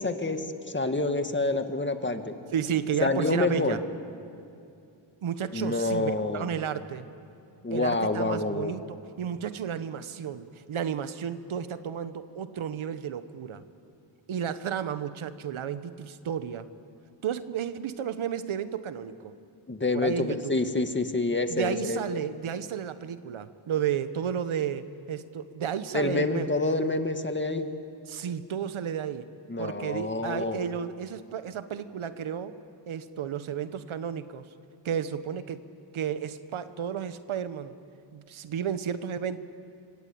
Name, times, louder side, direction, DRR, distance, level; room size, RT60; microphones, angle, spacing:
voice 1, 0.0-2.3 3.0-3.8 5.5-6.5 7.6-8.8 19.7-22.0 25.9-27.7 29.5-30.6, left 2 dB, 25° left, 7 dB, 1.9 m, -27 dB
voice 2, 2.5-3.8 5.2-7.0 7.7-13.6 14.3-16.7 17.2-19.3 19.9-20.6 21.5-26.5 28.1-29.3 29.6-32.6 32.9-34.4 34.8-35.6 35.9-37.8 38.1-39.4, right 8 dB, 80° right, 12 dB, 1.3 m, -32 dB
26.0 x 25.0 x 8.6 m, 2.5 s
cardioid pair, 90°, 47 cm